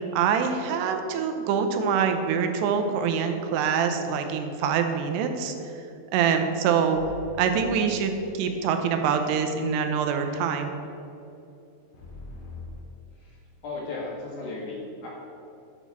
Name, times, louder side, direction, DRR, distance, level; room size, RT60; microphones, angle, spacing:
voice 1, 0.1-5.5 6.1-7.0 7.4-10.7, right 6 dB, 90° right, 6 dB, 2.8 m, -25 dB
sound 1, 6.9-8.6 11.9-12.8, left 4 dB, 80° left, 3.6 m, -42 dB
voice 2, 13.1-15.1, left 3 dB, 60° left, -5 dB, 2.6 m, -36 dB
9.0 x 4.2 x 7.1 m, 2.8 s
omnidirectional pair, 4.7 m